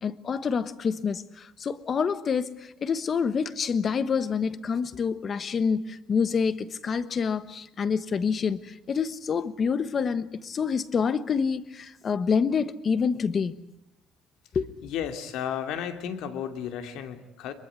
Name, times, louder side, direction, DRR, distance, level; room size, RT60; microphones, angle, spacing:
voice 1, 0.0-13.5 14.5-14.7, left 6 dB, 30° left, 1.1 m, -27 dB
voice 2, 14.8-17.5, left 9 dB, 70° left, 2.8 m, -33 dB
23.5 x 22.5 x 9.5 m
cardioid pair, 160°, 0 cm